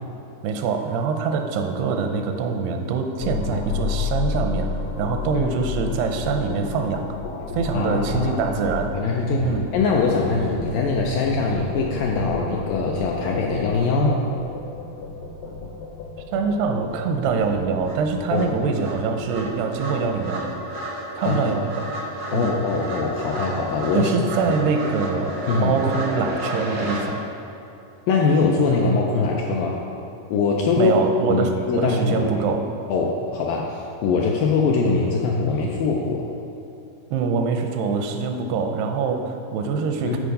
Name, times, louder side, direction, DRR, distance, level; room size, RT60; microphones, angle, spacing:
voice 1, 0.4-4.7 5.0-7.1 7.5-8.9 9.4-9.7 16.3-20.5 21.2-21.9 22.3-22.5 23.9-27.2 30.8-32.7 37.1-40.2, right 5 dB, 85° right, 5 dB, 2.7 m, -24 dB
sound 1, 3.2-20.4, left 5 dB, 75° left, 2.2 m, -32 dB
voice 2, 7.7-8.6 8.9-14.3 18.3-18.5 21.2-21.4 22.3-24.1 24.5-24.6 25.5-25.8 28.1-29.8 30.3-30.9 31.3-32.5 32.9-36.3 40.1-40.2, left 4 dB, 90° left, -1 dB, 2.0 m, -22 dB
sound 2, 16.9-17.0 17.4-27.0, right 1 dB, 70° right, 0.9 m, -32 dB
13.0 x 4.6 x 5.2 m, 2.8 s
omnidirectional pair, 4.6 m